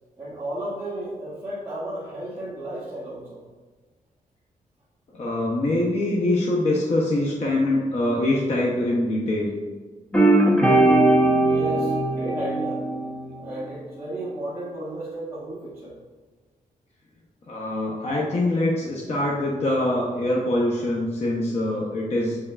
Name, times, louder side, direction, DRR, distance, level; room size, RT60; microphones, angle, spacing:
voice 1, 0.2-3.4 11.4-12.9 13.3-16.0, right 1 dB, 20° right, -9 dB, 1.3 m, -34 dB
voice 2, 5.1-9.5 17.5-22.4, left 1 dB, 50° left, -4 dB, 0.9 m, -24 dB
sound 1, 10.1-13.6, right 2 dB, 10° left, 0.8 m, -19 dB
7.9 x 5.5 x 2.4 m, 1.4 s
wide cardioid pair, 150°, 14 cm